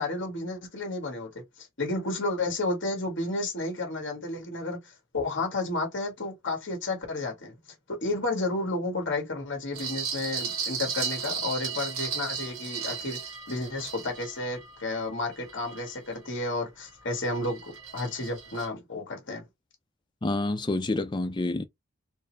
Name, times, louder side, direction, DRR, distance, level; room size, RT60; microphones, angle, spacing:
voice 1, 0.0-7.5 7.9-13.2 13.5-19.4, left 2 dB, 55° left, 1.7 m, -32 dB
sound 1, 9.7-16.4 16.9-18.7, right 6 dB, 75° right, 1.4 m, -36 dB
voice 2, 20.2-21.6, left 2 dB, 20° left, 0.4 m, -28 dB
4.4 x 2.1 x 3.2 m
head